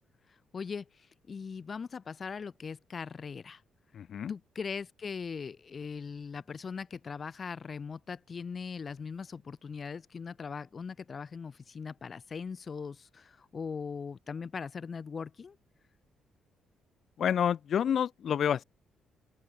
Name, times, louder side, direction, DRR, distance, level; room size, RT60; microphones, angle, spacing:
voice 1, 0.5-3.6 4.3-15.6, left 5 dB, 40° left, 4.8 m, -40 dB
voice 2, 3.9-4.3 17.2-18.6, left 8 dB, 60° left, 3.6 m, -28 dB
open air
cardioid pair, 90°, 0 cm